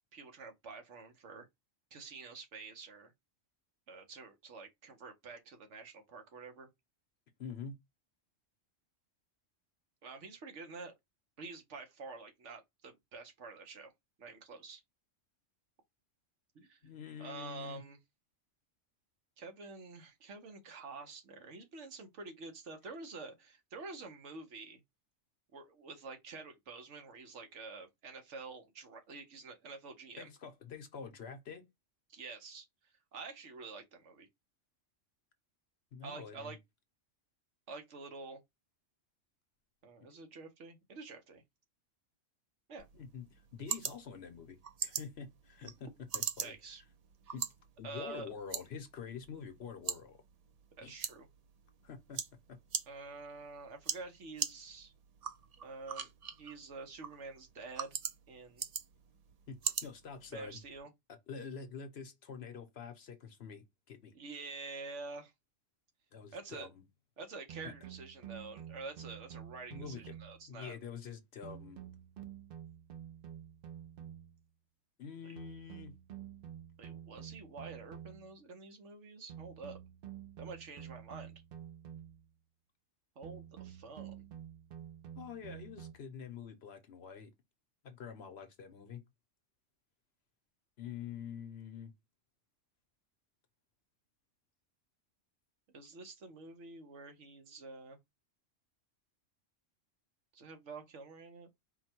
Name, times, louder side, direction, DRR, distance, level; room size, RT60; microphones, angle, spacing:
voice 1, 0.1-1.5 1.9-3.1 3.9-6.7 10.0-10.9 11.4-13.9 14.2-14.8 16.5-16.9 17.2-18.0 19.4-24.8 25.5-30.3 32.1-34.3 36.0-36.6 37.7-38.4 39.8-41.4 42.7-42.9 46.4-46.8 47.2-47.3 47.8-48.3 50.8-51.3 52.9-54.9 55.6-56.1 56.4-58.0 58.3-58.7 60.3-60.9 64.1-65.3 66.3-66.7 67.2-70.8 75.2-75.4 76.8-79.8 80.4-81.4 83.2-84.2 95.7-98.0 100.3-101.5, right 4 dB, 70° right, 1.3 m, -48 dB
voice 2, 7.4-7.8 16.8-17.8 30.2-31.6 35.9-36.6 42.9-45.9 46.1-46.5 47.3-47.5 47.8-50.2 50.8-50.9 51.8-52.2 52.5-52.6 59.5-60.6 61.3-64.1 66.1-66.8 67.6-67.7 69.7-70.2 70.5-71.8 75.0-75.9 85.1-87.3 87.8-89.0 90.8-91.9, left 6 dB, 60° left, 1.0 m, -46 dB
sound 1, 42.8-60.8, right 7 dB, 85° right, 0.3 m, -43 dB
sound 2, 67.5-70.5 71.4-74.4 75.4-78.4 79.3-82.3 83.2-85.9, right 10 dB, 55° right, 0.7 m, -49 dB
4.4 x 2.2 x 4.3 m
omnidirectional pair, 1.3 m